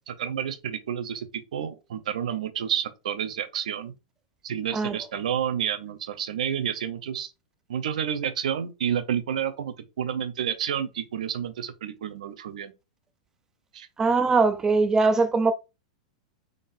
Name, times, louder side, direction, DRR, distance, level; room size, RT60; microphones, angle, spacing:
voice 1, 0.1-1.3 1.5-3.9 4.4-7.3 7.7-12.7 13.7-13.9, right 9 dB, 80° right, 0.7 m, -30 dB
voice 2, 14.0-15.5, right 4 dB, 15° right, 0.5 m, -21 dB
3.8 x 3.7 x 2.6 m
hypercardioid pair, 125°, 4 cm